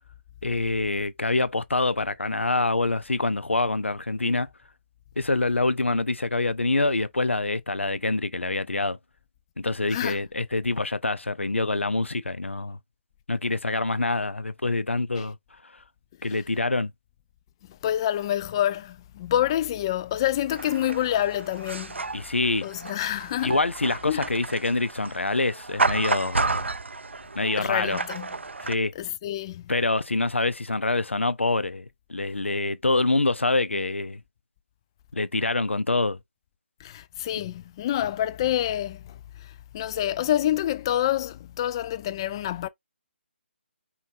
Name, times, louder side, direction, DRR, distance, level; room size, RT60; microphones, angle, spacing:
voice 1, 0.4-4.5 5.2-9.0 9.6-12.8 13.3-15.4 16.2-16.9 22.1-22.7 23.4-26.7 27.4-28.0 28.6-28.9 29.7-34.2 35.1-36.2, left 2 dB, 85° left, 0.6 m, -26 dB
voice 2, 17.8-22.0 22.6-23.6 24.1-24.3 27.6-28.3 29.0-29.6 36.8-39.2 39.4-42.7, left 12 dB, 25° left, 0.3 m, -27 dB
sound 1, 20.5-28.8, right 3 dB, 80° right, 0.5 m, -32 dB
5.5 x 2.4 x 3.9 m
figure-of-eight pair, 150°, 6 cm